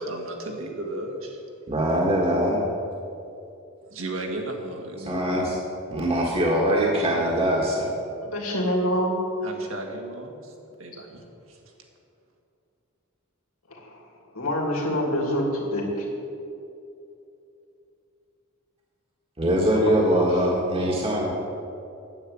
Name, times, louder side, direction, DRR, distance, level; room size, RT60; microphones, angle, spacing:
voice 1, 0.0-1.4 3.9-5.5 9.4-10.5 10.8-11.6, right 1 dB, 70° right, 1 dB, 2.0 m, -35 dB
voice 2, 1.7-2.6 5.0-5.6 5.9-7.9 19.4-21.3, equal, 30° right, -2 dB, 1.7 m, -22 dB
voice 3, 8.2-9.2 13.7-13.8 14.3-16.1 20.8-20.9, equal, 90° left, -1 dB, 2.9 m, -26 dB
9.7 x 8.6 x 8.6 m, 2.7 s
head